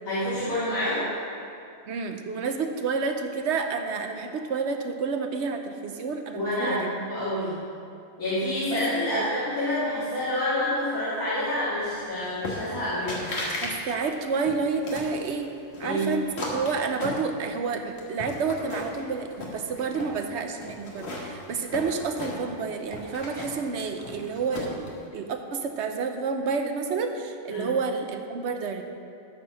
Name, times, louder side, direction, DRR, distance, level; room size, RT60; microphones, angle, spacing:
voice 1, 0.1-1.1 6.3-7.6 8.2-13.3 15.8-16.1 27.5-27.7, left 1 dB, 85° left, -14 dB, 3.0 m, -28 dB
voice 2, 1.9-6.9 8.7-8.8 9.1-9.2 13.6-15.5 15.8-28.8, right 4 dB, 60° right, 6 dB, 1.0 m, -29 dB
sound 1, 12.4-12.8 13.1-13.7 14.1-15.2 15.7-17.6 18.0-19.0 19.3-20.1 20.6-22.6 22.9-24.9, left 1 dB, 55° left, 1.7 m, -35 dB
13.5 x 4.4 x 6.2 m, 2.5 s
omnidirectional pair, 1.4 m